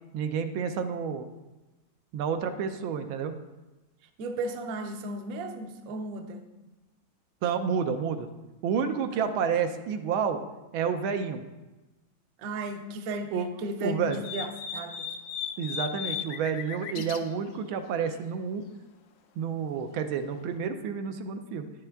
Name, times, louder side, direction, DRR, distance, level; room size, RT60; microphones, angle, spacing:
voice 1, 0.1-1.3 2.1-3.4 7.4-8.3 8.6-10.4 10.7-11.4 13.3-13.5 13.8-14.2 15.6-18.6 19.4-21.7, right 6 dB, 85° right, 7 dB, 1.5 m, -29 dB
voice 2, 4.2-6.4 9.1-9.3 12.4-15.1 16.9-17.3, right 1 dB, 60° right, 6 dB, 1.0 m, -35 dB
sound 1, 14.1-17.2, left 8 dB, 85° left, 0.7 m, -36 dB
10.0 x 7.1 x 3.4 m, 1.1 s
omnidirectional pair, 2.2 m